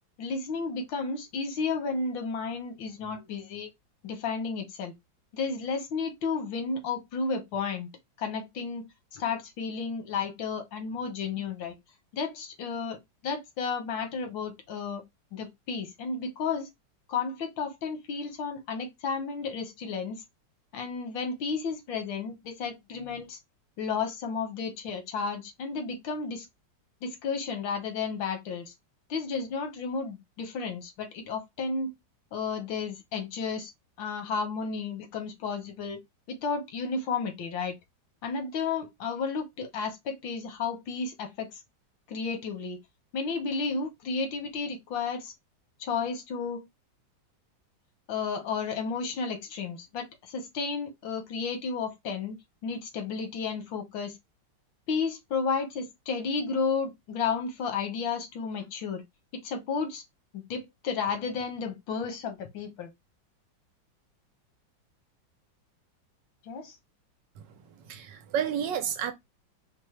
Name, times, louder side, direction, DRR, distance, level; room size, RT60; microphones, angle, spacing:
voice 1, 0.2-3.7 4.0-4.9 5.3-7.9 8.2-8.8 9.1-11.7 12.1-15.0 15.3-16.7 17.1-20.2 20.7-23.4 23.8-26.5 27.0-28.7 29.1-31.9 32.3-33.7 34.0-36.0 36.3-37.8 38.2-41.6 42.1-42.8 43.1-45.3 45.8-46.6 48.1-54.2 54.9-59.0 59.3-60.0 60.3-62.9 66.5-66.8, left 5 dB, 85° left, 1.7 m, -32 dB
voice 2, 67.4-69.1, right 8 dB, 75° right, 1.3 m, -32 dB
4.5 x 2.1 x 3.1 m
omnidirectional pair, 2.0 m